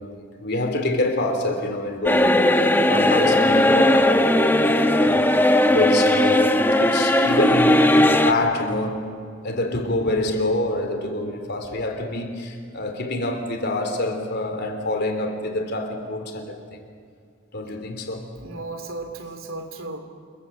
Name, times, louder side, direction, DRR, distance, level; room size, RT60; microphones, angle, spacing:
voice 1, 0.0-5.2 5.7-9.2 9.4-16.8 17.5-18.3, left 1 dB, 55° left, 3.3 m, -26 dB
sound 1, 2.0-8.3, left 1 dB, 10° left, 1.2 m, -17 dB
voice 2, 18.4-20.0, right 2 dB, 80° right, 3.1 m, -34 dB
28.5 x 22.0 x 7.8 m
head